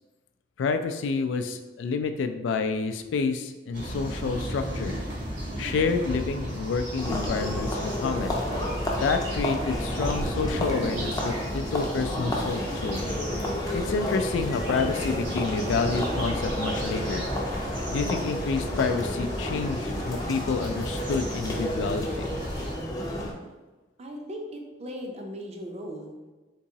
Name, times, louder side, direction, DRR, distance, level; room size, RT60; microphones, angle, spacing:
voice 1, 0.6-4.9 5.6-8.3 9.0-13.0 13.7-17.2 17.9-22.3, left 4 dB, 90° left, 7 dB, 0.3 m, -29 dB
sound 1, 3.7-22.7, equal, 75° right, 1.4 m, -35 dB
sound 2, 7.0-23.3, left 1 dB, 20° left, 0.5 m, -31 dB
voice 2, 24.0-26.2, equal, 35° right, 2 dB, 0.5 m, -38 dB
3.6 x 2.8 x 2.8 m, 1.2 s
head